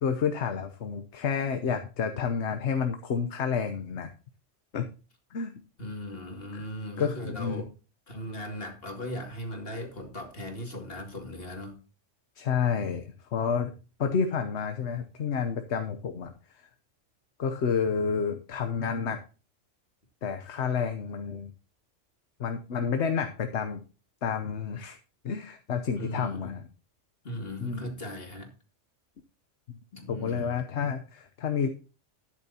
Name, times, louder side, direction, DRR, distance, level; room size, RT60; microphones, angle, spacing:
voice 1, 0.0-4.1 4.7-4.9 5.3-5.5 6.5-6.6 7.0-7.7 12.4-13.7 14.0-16.6 17.4-19.2 20.2-21.5 22.4-23.8 24.2-25.0 25.2-26.6 27.6-27.9 30.1-31.7, left 6 dB, 65° left, 7 dB, 1.2 m, -30 dB
voice 2, 5.8-7.7 8.1-11.8 26.0-26.6 27.2-28.5 29.9-30.9, equal, 50° left, 2 dB, 2.9 m, -38 dB
12.0 x 10.5 x 2.9 m, 0.34 s
omnidirectional pair, 1.2 m